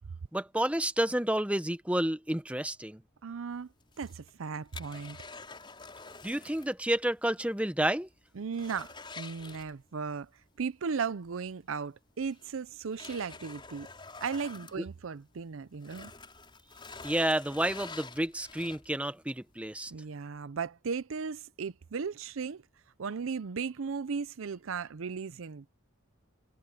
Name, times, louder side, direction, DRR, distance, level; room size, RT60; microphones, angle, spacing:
voice 1, 0.3-3.0 6.2-8.1 17.0-19.9, right 1 dB, 5° right, 0.8 m, -30 dB
voice 2, 3.2-3.7 4.0-5.2 8.4-10.3 10.6-13.9 14.2-16.1 19.9-22.6 23.0-25.7, right 5 dB, 75° right, 0.5 m, -36 dB
sound 1, 3.8-6.8 7.1-7.2 7.6-7.7 8.1-10.1 11.5-11.6 12.3-15.4 15.7-19.1 19.6-19.7, left 4 dB, 25° left, 6.0 m, -47 dB
head